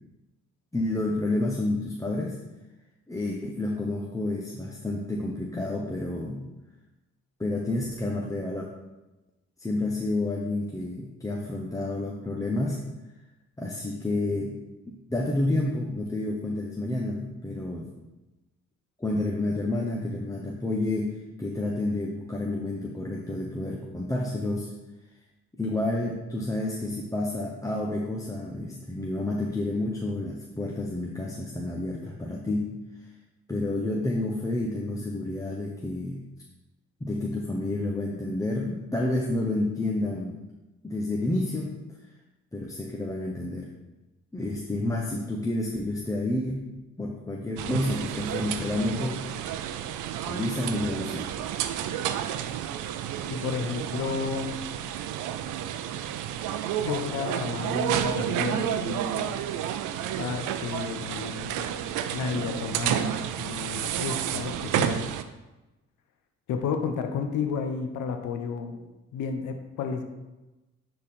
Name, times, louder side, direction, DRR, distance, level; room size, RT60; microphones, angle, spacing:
voice 1, 0.7-2.4 3.1-6.4 7.4-8.7 9.6-12.8 13.6-14.6 14.9-17.9 19.0-24.7 25.6-32.8 33.5-36.3 37.0-40.4 40.8-41.7 42.5-43.7 44.3-46.6 47.0-49.2 50.3-51.2, left 2 dB, 10° left, -2 dB, 0.9 m, -29 dB
sound 1, 47.6-65.2, right 10 dB, 90° right, 0.5 m, -31 dB
voice 2, 53.3-54.6 56.8-59.5 60.2-61.7 62.1-65.0 66.5-68.7 69.1-70.0, left 6 dB, 85° left, 5 dB, 0.9 m, -32 dB
9.8 x 4.0 x 4.2 m, 1.0 s
cardioid pair, 90°, 30 cm